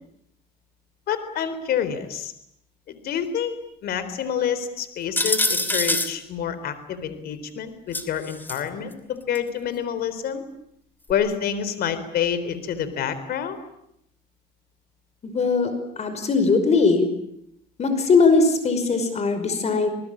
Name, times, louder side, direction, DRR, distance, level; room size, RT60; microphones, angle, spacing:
voice 1, 1.1-2.3 2.9-3.5 3.8-10.5 11.1-13.6, left 8 dB, 65° left, 12 dB, 3.9 m, -28 dB
sound 1, 5.2-6.1 7.9-8.6 9.3-9.4 11.1-11.2, left 2 dB, 10° left, 2.9 m, -24 dB
voice 2, 15.2-15.7 16.0-17.1 17.8-19.9, left 4 dB, 40° left, 8 dB, 5.5 m, -20 dB
28.0 x 20.0 x 8.8 m, 0.76 s
cardioid pair, 110°, 17 cm